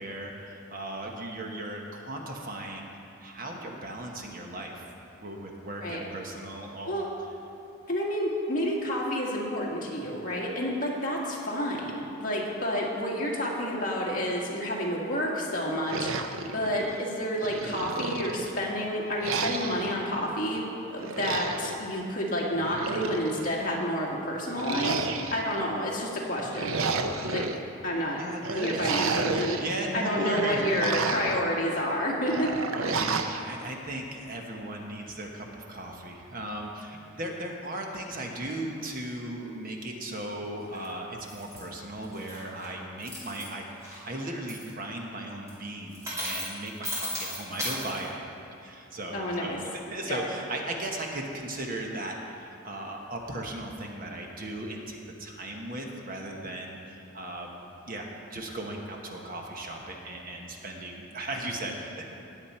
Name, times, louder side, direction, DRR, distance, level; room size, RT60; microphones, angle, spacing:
voice 1, 0.0-2.9 3.2-4.8 5.2-7.0 28.2-28.9 29.2-30.6 32.7-48.2 48.6-57.5 57.8-62.1, right 1 dB, 40° right, 1 dB, 1.2 m, -37 dB
voice 2, 7.9-26.8 27.3-27.5 27.8-28.2 28.5-29.6 29.9-32.7 49.1-49.6 50.1-50.2, equal, 40° left, -3 dB, 1.9 m, -29 dB
sound 1, 15.9-17.0 17.4-18.6 19.2-19.9 21.0-21.8 22.5-23.5 24.6-25.6 26.3-27.6 28.4-29.7 30.1-31.4 32.3-33.4, right 4 dB, 75° right, 0.7 m, -31 dB
sound 2, 40.7-40.9 41.3-41.6 42.0-42.7 43.0-43.4 43.8-44.2 44.5-44.6 45.5-45.6 45.9-48.0, equal, 15° right, 2.8 m, -35 dB
19.0 x 7.4 x 4.4 m, 2.9 s
head